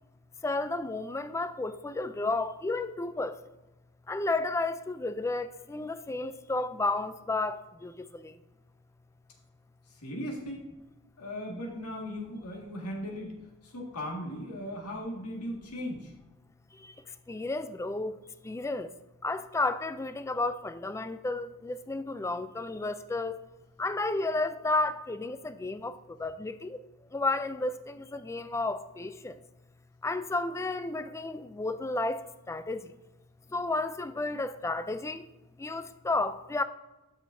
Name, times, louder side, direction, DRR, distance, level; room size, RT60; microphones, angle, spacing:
voice 1, 0.4-3.3 4.1-7.9 17.3-18.1 18.4-18.9 19.2-23.4 23.8-25.9 26.2-26.8 27.1-29.3 30.0-32.2 32.5-32.8 33.5-35.2 35.6-36.6, left 2 dB, 15° left, 0.3 m, -32 dB
voice 2, 10.0-10.6 11.2-13.3 13.6-16.1, equal, 80° left, 1.9 m, -37 dB
12.0 x 6.4 x 2.7 m
head